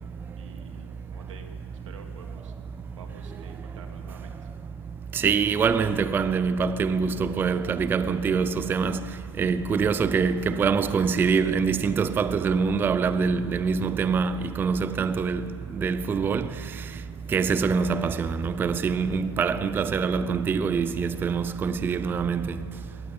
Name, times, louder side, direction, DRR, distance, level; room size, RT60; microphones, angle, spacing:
voice 1, 0.3-1.6 1.8-4.5, right 5 dB, 80° right, 3.2 m, -49 dB
voice 2, 5.1-9.0 9.4-15.5 15.8-16.5 17.3-22.5, right 5 dB, 15° right, 0.5 m, -24 dB
22.0 x 18.0 x 8.7 m
hypercardioid pair, 130°, 16 cm